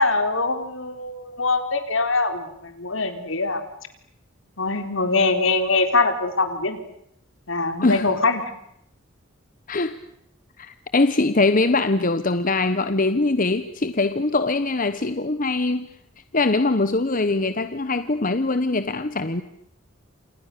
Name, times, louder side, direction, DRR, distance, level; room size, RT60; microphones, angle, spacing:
voice 1, 0.0-3.6 4.6-6.8 7.5-8.5, left 3 dB, 70° left, 8 dB, 3.9 m, -23 dB
voice 2, 10.6-15.9 16.3-19.4, left 3 dB, 40° left, 11 dB, 1.1 m, -22 dB
30.0 x 27.5 x 6.8 m, 0.76 s
head